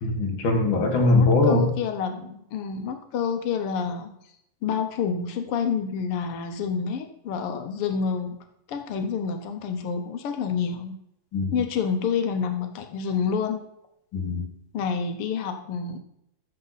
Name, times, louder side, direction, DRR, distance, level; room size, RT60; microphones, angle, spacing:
voice 1, 0.0-1.7 11.3-11.5 14.1-14.4, left 2 dB, 45° left, 1 dB, 2.2 m, -21 dB
voice 2, 0.7-4.1 4.6-8.4 8.7-11.0 11.5-13.6 14.7-16.0, left 6 dB, 85° left, 6 dB, 1.2 m, -28 dB
14.0 x 6.7 x 4.0 m, 0.78 s
omnidirectional pair, 3.8 m